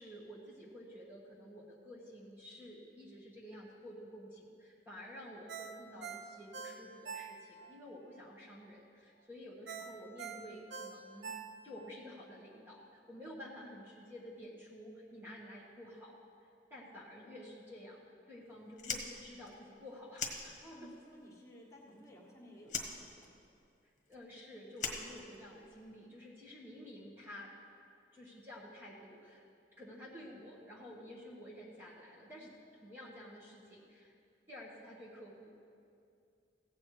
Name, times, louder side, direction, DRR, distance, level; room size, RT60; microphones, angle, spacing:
voice 1, 0.0-11.3 11.6-16.2 16.7-18.0 18.3-20.9 23.8-27.5 28.1-29.4 29.8-34.1 34.5-35.5, equal, 10° right, -4 dB, 1.3 m, -51 dB
Ringtone, 5.5-7.7 8.1-8.2 9.7-11.9 12.3-12.4, right 6 dB, 80° right, 0.8 m, -45 dB
Fire, 18.7-21.0 21.3-22.3 22.6-25.8, left 5 dB, 45° left, 1.3 m, -42 dB
voice 2, 20.6-23.3, equal, 20° left, -2 dB, 1.7 m, -55 dB
15.5 x 8.4 x 4.8 m, 2.4 s
head